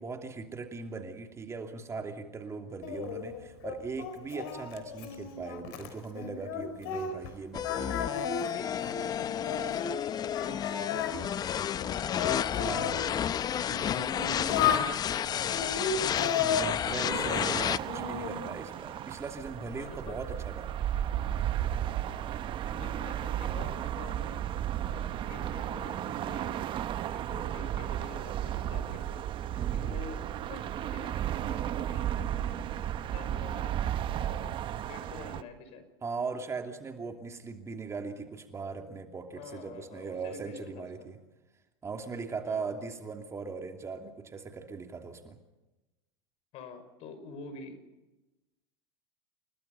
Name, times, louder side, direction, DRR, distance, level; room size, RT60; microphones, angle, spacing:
voice 1, 0.0-8.4 12.6-13.1 16.3-20.7 29.5-30.0 36.0-41.2 41.8-45.4, right 4 dB, 20° right, 4 dB, 2.8 m, -39 dB
Singing, 2.8-7.3 7.6-10.0 10.3-13.0 13.6-14.9 15.5-17.5 17.9-18.5, left 7 dB, 70° left, 4.2 m, -34 dB
sound 1, 7.5-17.8, left 9 dB, 30° left, 0.7 m, -31 dB
voice 2, 7.9-14.6 15.0-16.3 19.8-20.2 22.7-24.4 24.8-29.2 29.7-32.6 33.1-33.8 34.2-35.9 39.4-41.1 42.5-42.8 46.5-47.8, left 4 dB, 50° left, 10 dB, 5.8 m, -47 dB
sound 2, 16.9-35.4, right 11 dB, 40° right, 1.1 m, -34 dB
30.0 x 19.0 x 5.6 m, 1.0 s
hypercardioid pair, 100°, 13 cm